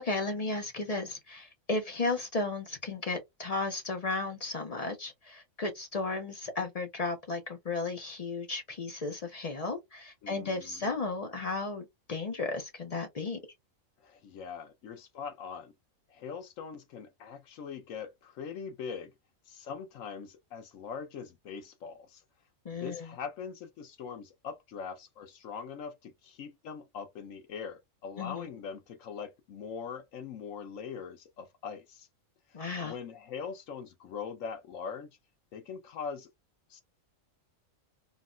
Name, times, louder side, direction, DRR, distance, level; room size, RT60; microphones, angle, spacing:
voice 1, 0.0-13.4 22.6-23.1 28.2-28.5 32.5-32.9, left 3 dB, 50° left, 0.4 m, -34 dB
voice 2, 10.2-10.9 14.0-15.7 16.1-19.1 19.5-22.2 22.8-32.1 32.5-35.1 35.5-36.3 36.7-36.8, left 6 dB, 80° left, 1.2 m, -42 dB
3.9 x 2.1 x 2.4 m
omnidirectional pair, 1.3 m